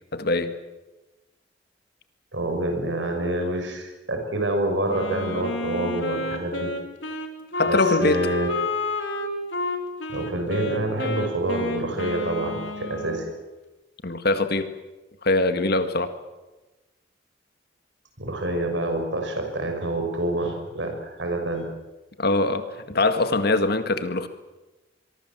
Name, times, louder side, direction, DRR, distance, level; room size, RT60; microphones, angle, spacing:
voice 1, 0.1-0.5 7.6-8.3 14.0-14.7 15.2-16.1 22.2-24.3, left 2 dB, 55° left, 9 dB, 1.9 m, -22 dB
voice 2, 2.3-6.7 7.7-8.5 10.1-13.3 18.2-21.7, right 1 dB, 75° right, 5 dB, 6.0 m, -27 dB
Wind instrument woodwind instrument, 4.9-13.3, left 2 dB, 80° left, 3.2 m, -30 dB
24.5 x 23.0 x 7.6 m, 1.1 s
head